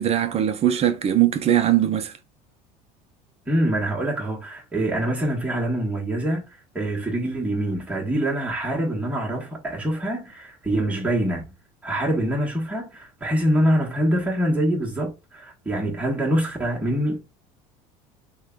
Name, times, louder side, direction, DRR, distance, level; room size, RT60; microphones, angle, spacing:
voice 1, 0.0-2.1, right 11 dB, 35° right, 0.5 m, -20 dB
voice 2, 3.5-6.4 6.7-11.4 11.8-17.2, right 1 dB, 5° right, 1.2 m, -24 dB
3.1 x 2.3 x 3.6 m
supercardioid pair, 90°, 18 cm